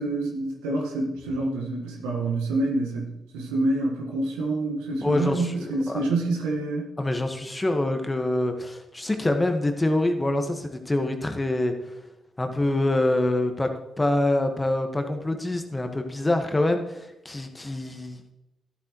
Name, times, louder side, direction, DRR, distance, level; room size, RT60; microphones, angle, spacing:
voice 1, 0.0-6.9, right 2 dB, 85° right, 0 dB, 1.5 m, -27 dB
voice 2, 5.0-6.1 7.0-11.7 12.4-13.7 14.0-18.2, left 1 dB, 20° left, 6 dB, 1.4 m, -25 dB
12.5 x 7.8 x 3.1 m, 0.94 s
hypercardioid pair, 45°, 0 cm